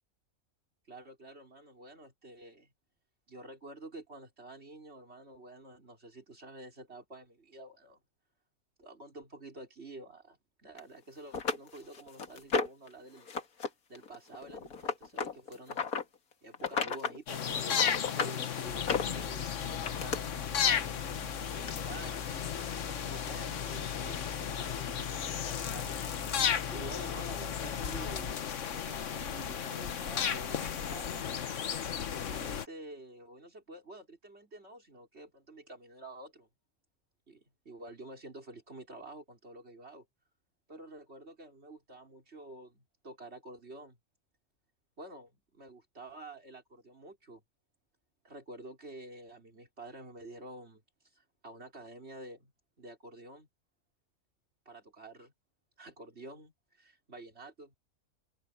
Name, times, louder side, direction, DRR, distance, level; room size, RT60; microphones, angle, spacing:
voice 1, 0.9-2.7 3.3-8.0 8.8-13.3 13.9-15.9 16.4-22.2 23.1-26.1 26.7-28.4 28.7-31.3 32.1-36.5 37.3-40.1 40.7-44.0 45.0-47.4 48.2-50.8 51.1-52.5 52.8-53.5 54.6-55.3 55.8-57.7, right 2 dB, 45° right, 4.7 m, -49 dB
sound 1, 10.8-10.9 11.3-12.9 13.3-13.7 13.9-16.0 16.5-17.2 17.5-18.4 18.8-20.2 21.1-21.2 21.7-21.8, left 5 dB, 85° left, 2.2 m, -33 dB
sound 2, 17.3-32.7, left 8 dB, 60° left, 1.3 m, -34 dB
sound 3, 18.7-28.3, left 7 dB, 45° left, 0.5 m, -42 dB
omnidirectional pair, 1.5 m